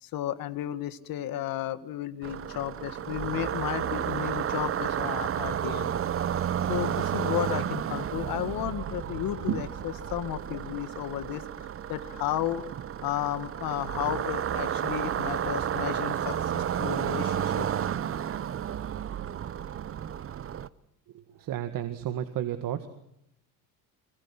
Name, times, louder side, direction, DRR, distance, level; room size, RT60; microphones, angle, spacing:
voice 1, 0.0-5.9 6.7-11.4 11.9-12.6 13.0-17.7, left 12 dB, 70° left, 13 dB, 1.9 m, -33 dB
sound 1, 2.2-20.7, right 9 dB, 35° right, 0.9 m, -31 dB
voice 2, 21.4-22.9, right 11 dB, 65° right, 8 dB, 2.0 m, -32 dB
25.5 x 23.0 x 6.1 m, 0.80 s
cardioid pair, 110°, 36 cm